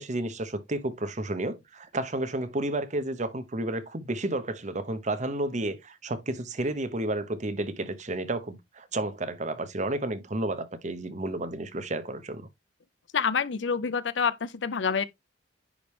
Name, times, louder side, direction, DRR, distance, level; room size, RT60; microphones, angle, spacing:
voice 1, 0.0-12.5, right 1 dB, 40° right, 1.0 m, -31 dB
voice 2, 13.1-15.0, left 6 dB, 75° left, 0.6 m, -27 dB
10.0 x 3.4 x 3.1 m
head